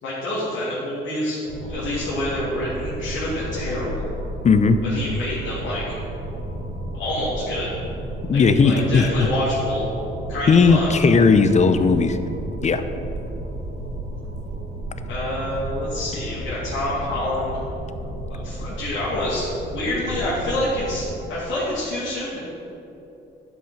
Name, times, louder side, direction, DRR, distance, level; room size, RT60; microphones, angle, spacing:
voice 1, 0.0-4.0 4.9-5.8 6.9-7.8 8.3-9.9 10.3-10.9 15.1-17.6 18.3-22.4, left 1 dB, 80° left, -10 dB, 2.4 m, -27 dB
sound 1, 1.4-21.2, right 1 dB, 80° right, 2.4 m, -33 dB
voice 2, 4.4-4.8 8.3-9.3 10.5-12.2 12.6-12.8, left 4 dB, 35° left, 10 dB, 0.7 m, -16 dB
11.0 x 5.7 x 5.7 m, 2.9 s
cardioid pair, 90°, 20 cm